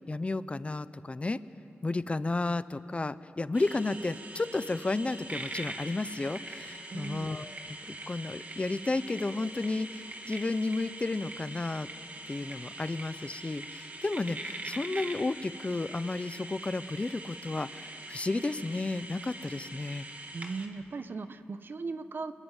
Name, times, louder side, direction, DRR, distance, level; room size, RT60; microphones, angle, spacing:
voice 1, 0.1-1.4 1.8-11.9 12.3-20.1, left 2 dB, 30° left, 14 dB, 0.8 m, -32 dB
sound 1, 3.5-20.7, right 2 dB, 35° right, 2.7 m, -43 dB
voice 2, 6.9-7.4 20.3-22.3, right 4 dB, 55° right, 11 dB, 1.1 m, -38 dB
27.5 x 22.0 x 9.1 m, 2.8 s
wide cardioid pair, 80°, 4 cm